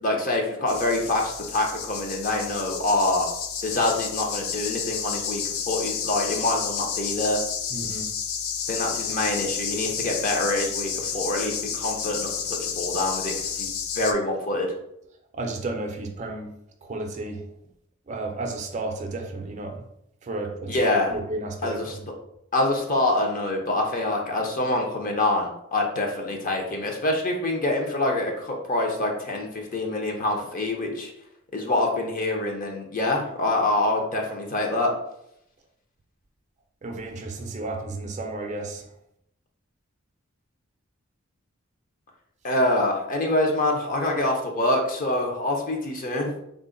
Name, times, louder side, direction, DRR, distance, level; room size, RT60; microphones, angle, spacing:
voice 1, 0.0-3.3 3.6-7.4 8.7-13.7 13.9-14.7 20.7-21.2 21.6-22.0 22.5-31.1 31.5-34.9 42.4-46.3, left 2 dB, 40° left, 1 dB, 0.7 m, -25 dB
sound 1, 0.7-14.1, left 7 dB, 80° left, 0.4 m, -31 dB
voice 2, 7.7-8.1 15.3-16.5 16.8-17.4 18.1-19.8 20.2-20.8 21.1-22.1 36.8-38.8, right 2 dB, 35° right, 3 dB, 0.4 m, -32 dB
3.7 x 2.1 x 3.8 m, 0.77 s
head